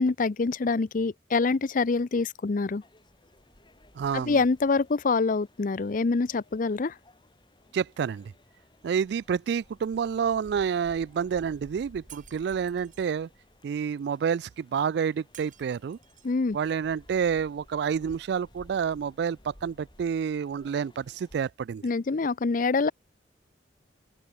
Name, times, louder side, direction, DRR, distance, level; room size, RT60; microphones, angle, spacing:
voice 1, 0.0-2.8 4.1-6.9 16.2-16.6 21.8-22.9, left 4 dB, 50° left, 0.5 m, -25 dB
sound 1, 2.8-21.5, left 1 dB, 25° left, 4.1 m, -57 dB
voice 2, 4.0-4.4 7.7-8.3 8.8-13.3 13.6-16.0 16.5-21.8, right 7 dB, 65° right, 0.3 m, -29 dB
Shatter, 12.1-13.1 15.3-16.4, right 11 dB, 50° right, 6.4 m, -53 dB
open air
head